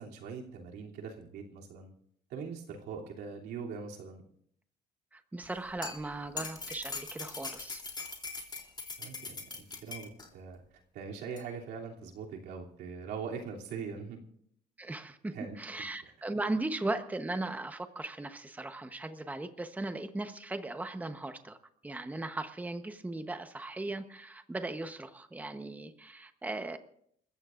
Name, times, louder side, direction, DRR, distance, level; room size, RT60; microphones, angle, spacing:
voice 1, 0.0-1.9 2.3-4.2 9.0-10.6 10.9-14.2 15.3-15.6 16.0-16.1, right 5 dB, 80° right, -1 dB, 3.0 m, -42 dB
voice 2, 5.1-7.8 14.8-21.6 21.8-26.8, right 2 dB, 10° right, 8 dB, 1.0 m, -38 dB
sound 1, 5.4-10.3 11.4-11.5, left 4 dB, 25° left, 3.2 m, -41 dB
28.5 x 14.5 x 2.6 m, 0.66 s
cardioid pair, 110°, 17 cm